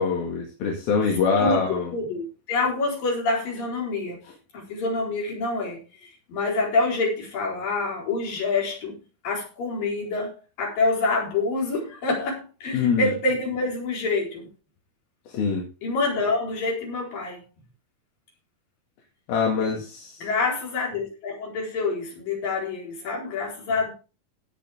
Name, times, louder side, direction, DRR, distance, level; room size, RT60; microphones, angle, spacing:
voice 1, 0.0-1.9 12.7-13.1 15.3-15.6 19.3-20.2, left 5 dB, 85° left, 4.1 m, -24 dB
voice 2, 1.9-4.2 4.5-9.0 9.2-14.4 15.8-17.4 19.6-19.7 20.2-23.9, left 3 dB, 70° left, 6.0 m, -27 dB
17.0 x 6.8 x 3.6 m
omnidirectional pair, 4.2 m